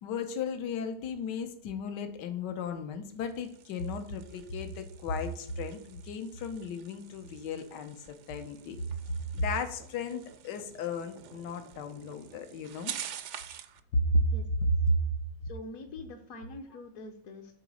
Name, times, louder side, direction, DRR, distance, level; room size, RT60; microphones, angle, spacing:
voice 1, 0.0-8.8 9.1-12.9 13.9-14.2 14.8-14.9, left 2 dB, 80° left, 7 dB, 1.5 m, -34 dB
sound 1, 3.1-13.8, right 9 dB, 70° right, 0.7 m, -47 dB
voice 2, 15.4-17.5, left 2 dB, 60° left, 2 dB, 1.1 m, -44 dB
8.0 x 3.9 x 6.2 m, 0.72 s
omnidirectional pair, 1.8 m